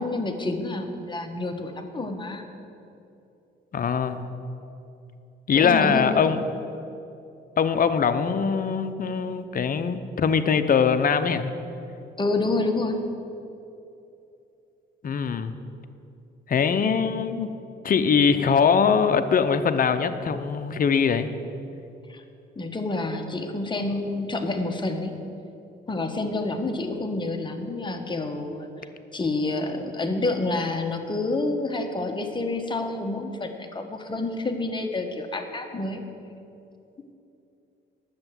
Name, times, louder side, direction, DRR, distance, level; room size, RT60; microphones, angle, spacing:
voice 1, 0.0-2.5 5.6-6.2 12.2-13.0 22.1-22.2 22.6-25.1 25.9-28.7 29.1-36.0, left 2 dB, 25° left, 5 dB, 1.2 m, -28 dB
voice 2, 3.7-4.3 5.5-6.4 7.6-11.5 15.0-15.5 16.5-17.6 17.8-21.3, left 6 dB, 45° left, 10 dB, 0.7 m, -22 dB
10.5 x 8.0 x 7.6 m, 2.8 s
cardioid pair, 90°, 20 cm